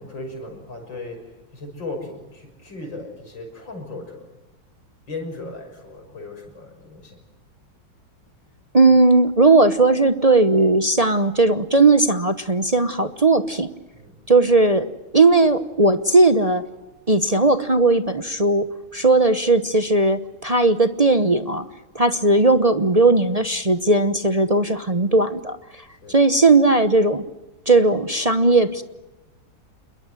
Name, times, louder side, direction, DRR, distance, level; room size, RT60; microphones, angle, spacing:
voice 1, 0.0-4.4 5.1-7.2 13.9-14.3 25.9-26.2, left 2 dB, 65° left, 3 dB, 6.9 m, -37 dB
voice 2, 8.7-13.7 14.3-16.6 17.1-18.7 18.9-21.6 21.9-25.6 26.1-27.2 27.7-28.8, right 2 dB, 30° right, 10 dB, 0.6 m, -17 dB
28.0 x 22.0 x 7.7 m, 1.0 s
omnidirectional pair, 2.1 m